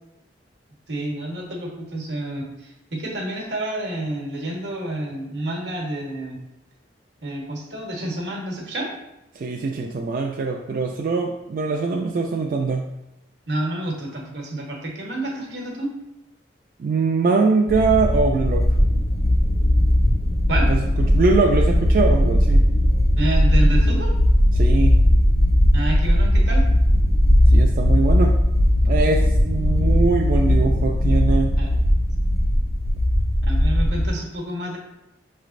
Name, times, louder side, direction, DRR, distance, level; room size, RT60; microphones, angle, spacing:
voice 1, 0.9-2.5 2.9-6.4 7.2-8.9 13.5-15.9 20.5-20.7 23.2-24.1 25.7-26.6 31.6-31.7 33.5-34.8, right 1 dB, 85° right, 0 dB, 1.0 m, -29 dB
voice 2, 9.4-12.9 16.8-18.8 20.7-22.7 24.5-25.0 27.4-28.3 28.8-31.5, right 4 dB, 50° right, 1 dB, 0.3 m, -22 dB
sound 1, 17.7-34.1, equal, 35° left, 0.4 m, -18 dB
5.7 x 3.2 x 2.5 m, 0.90 s
head